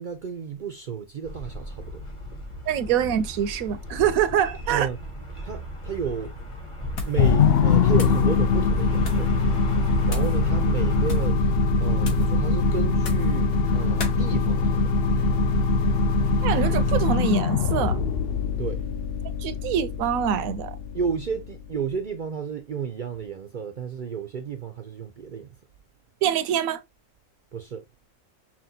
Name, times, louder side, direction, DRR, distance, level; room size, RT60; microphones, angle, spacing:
voice 1, 0.0-2.0 4.7-5.0 5.4-6.5 7.0-9.3 10.1-14.9 18.6-18.9 20.9-25.6 27.5-27.9, right 6 dB, 60° right, 0.5 m, -32 dB
sound 1, 1.2-11.3, equal, 25° left, 0.9 m, -37 dB
voice 2, 2.7-4.9 16.4-18.0 19.4-20.8 26.2-26.8, right 9 dB, 80° right, 1.0 m, -25 dB
sound 2, 6.9-7.3 7.6-8.3 9.0-9.3 10.1-10.4 11.0-11.4 12.0-12.4 13.0-13.4 14.0-14.2, left 4 dB, 85° left, 1.4 m, -35 dB
sound 3, 7.2-21.7, left 4 dB, 65° left, 0.6 m, -22 dB
5.8 x 2.3 x 2.7 m
omnidirectional pair, 1.4 m